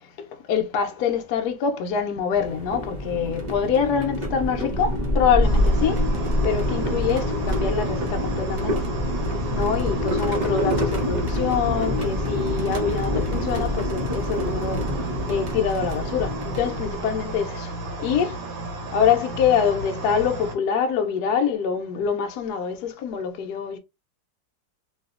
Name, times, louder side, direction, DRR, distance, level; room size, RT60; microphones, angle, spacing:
voice 1, 0.0-6.1 6.4-8.9 9.5-18.4 18.9-23.8, left 7 dB, 70° left, 1.0 m, -25 dB
sound 1, 2.3-17.3, left 1 dB, 65° right, 0.4 m, -26 dB
sound 2, 5.4-20.6, right 1 dB, 90° right, 1.6 m, -33 dB
3.1 x 2.7 x 2.4 m
omnidirectional pair, 2.0 m